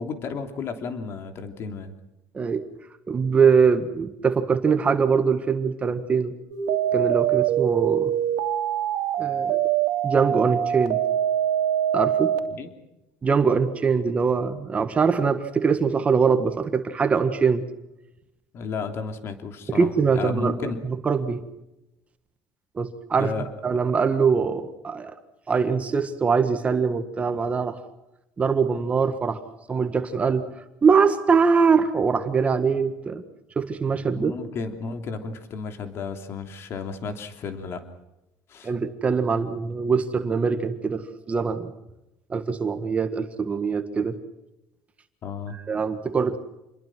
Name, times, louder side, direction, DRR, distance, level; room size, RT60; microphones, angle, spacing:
voice 1, 0.0-1.9 12.5-12.7 18.5-19.9 20.1-20.8 23.2-23.5 34.2-37.8 38.5-38.7 45.2-45.6, left 4 dB, 40° left, 7 dB, 3.1 m, -33 dB
voice 2, 3.1-6.3 6.9-8.1 9.2-9.6 10.0-11.0 11.9-12.3 13.2-17.6 19.7-21.4 22.7-23.3 23.6-25.1 25.5-27.8 28.4-29.4 29.7-30.5 30.8-33.2 33.5-34.3 38.6-41.7 42.3-44.2 45.5-46.4, right 5 dB, 20° right, 8 dB, 1.7 m, -22 dB
sound 1, 6.5-12.4, right 10 dB, 70° right, 2.8 m, -24 dB
28.0 x 22.0 x 6.2 m, 0.93 s
cardioid pair, 160°, 7 cm